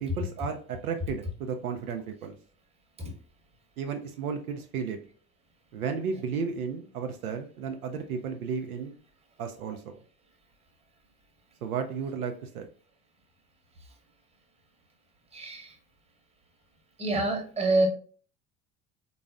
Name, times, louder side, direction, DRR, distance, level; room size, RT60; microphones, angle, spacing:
voice 1, 0.0-2.4 3.8-5.0 5.7-9.0 9.4-9.9 11.6-12.7, right 6 dB, 75° right, 4 dB, 0.6 m, -33 dB
voice 2, 15.3-15.7 17.0-17.9, right 2 dB, 15° right, 1 dB, 1.1 m, -27 dB
3.9 x 3.0 x 2.4 m, 0.42 s
figure-of-eight pair, 65°, 44 cm